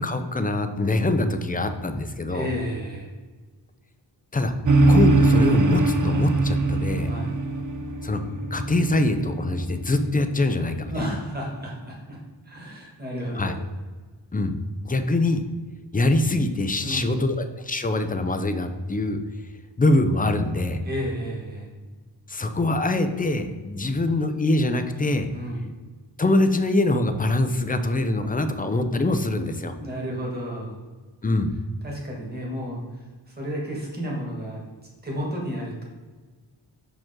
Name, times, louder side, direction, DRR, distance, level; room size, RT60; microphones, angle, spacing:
voice 1, 0.0-2.5 4.3-4.5 4.9-7.1 8.0-8.2 8.5-10.9 13.4-13.5 14.3-14.6 14.8-15.4 15.9-19.2 19.8-20.8 22.3-25.3 26.2-29.8 31.2-31.5, left 2 dB, 20° left, 8 dB, 0.5 m, -23 dB
voice 2, 2.3-3.1 7.1-7.4 10.9-12.2 12.4-13.6 16.8-17.2 20.8-21.7 25.3-25.7 29.8-30.8 31.8-34.6 35.0-35.8, equal, 20° right, -3 dB, 1.8 m, -32 dB
sound 1, 4.6-10.3, right 2 dB, 45° right, 0.6 m, -22 dB
6.1 x 5.1 x 3.7 m, 1.4 s
wide cardioid pair, 115°, 45 cm